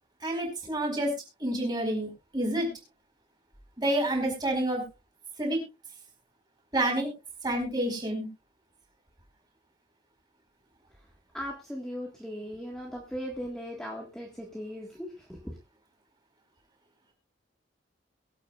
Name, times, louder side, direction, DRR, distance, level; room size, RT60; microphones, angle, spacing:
voice 1, 0.2-1.1 1.4-2.7 3.8-4.8 5.4-5.6 6.7-7.1 7.4-8.3, right 1 dB, 20° right, 1 dB, 4.7 m, -28 dB
voice 2, 11.3-15.6, equal, 5° left, -1 dB, 1.7 m, -38 dB
22.5 x 8.4 x 2.4 m, 0.27 s
head